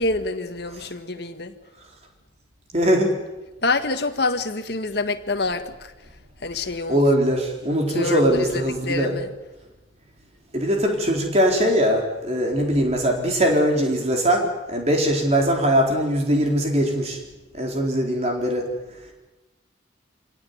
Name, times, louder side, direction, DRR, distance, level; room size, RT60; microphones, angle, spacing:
voice 1, 0.0-1.5 3.6-5.9 6.4-7.0 7.9-9.3, left 3 dB, 55° left, 7 dB, 1.7 m, -26 dB
voice 2, 2.7-3.1 6.9-9.2 10.5-17.2 17.5-18.6, equal, 35° right, 2 dB, 4.2 m, -21 dB
25.5 x 17.5 x 9.5 m, 1.1 s
head